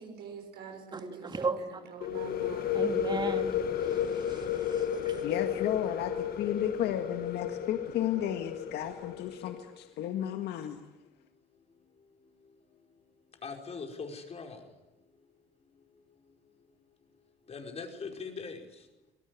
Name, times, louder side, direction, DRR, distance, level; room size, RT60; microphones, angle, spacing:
voice 1, 0.0-2.9, right 6 dB, 75° right, 6.5 m, -46 dB
voice 2, 0.9-1.6 2.7-5.2, right 4 dB, 25° right, 2.5 m, -37 dB
sound 1, 2.0-9.6, left 8 dB, 60° left, 1.9 m, -32 dB
voice 3, 5.2-10.8, left 11 dB, 80° left, 1.9 m, -33 dB
voice 4, 13.4-14.6 17.5-18.6, left 5 dB, 40° left, 5.1 m, -40 dB
26.0 x 19.0 x 9.7 m
cardioid pair, 110°, 17 cm